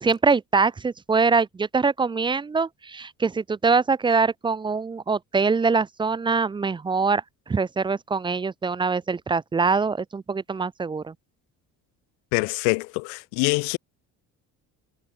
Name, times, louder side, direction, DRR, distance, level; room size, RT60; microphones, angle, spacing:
voice 1, 0.0-11.1, right 4 dB, 10° right, 0.3 m, -23 dB
voice 2, 12.3-13.8, left 40 dB or more, 70° left, 0.7 m, -24 dB
hypercardioid pair, 50°, 49 cm